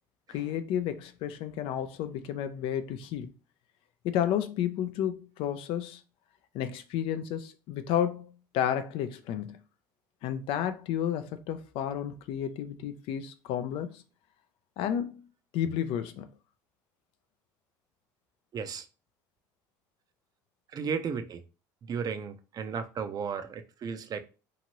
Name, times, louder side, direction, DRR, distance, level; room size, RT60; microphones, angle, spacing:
voice 1, 0.3-3.3 4.0-6.0 6.5-9.6 10.2-14.0 14.8-15.3 15.5-16.3, left 10 dB, 65° left, 0.4 m, -31 dB
voice 2, 18.5-18.9 20.7-21.4 21.9-24.2, right 6 dB, 40° right, 0.4 m, -34 dB
2.9 x 2.5 x 2.8 m
supercardioid pair, 85°, 10 cm